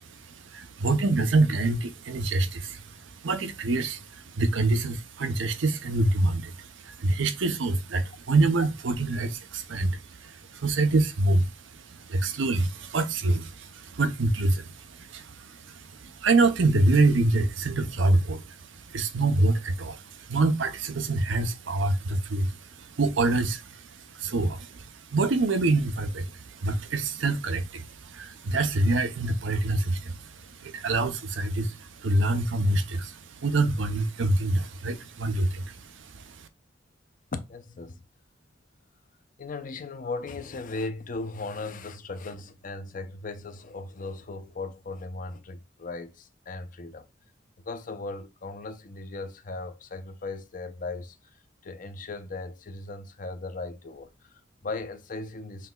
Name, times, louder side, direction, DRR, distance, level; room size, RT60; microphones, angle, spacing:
voice 1, 0.0-36.5, right 2 dB, 80° right, 0.7 m, -26 dB
voice 2, 37.3-38.0 39.4-47.1 47.6-55.7, left 3 dB, 45° left, 0.6 m, -37 dB
5.8 x 2.9 x 2.3 m
head